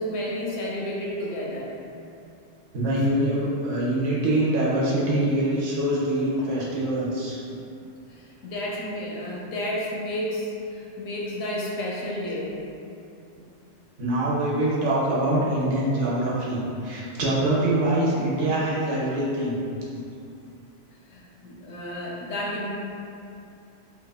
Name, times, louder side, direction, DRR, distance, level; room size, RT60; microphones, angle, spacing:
voice 1, 0.0-1.7 7.5-7.6 8.1-12.5 21.1-22.7, left 1 dB, 80° left, -4 dB, 0.9 m, -31 dB
voice 2, 2.7-7.4 14.0-19.6, right 1 dB, 80° right, -6 dB, 1.0 m, -24 dB
2.8 x 2.2 x 2.2 m, 2.6 s
omnidirectional pair, 1.3 m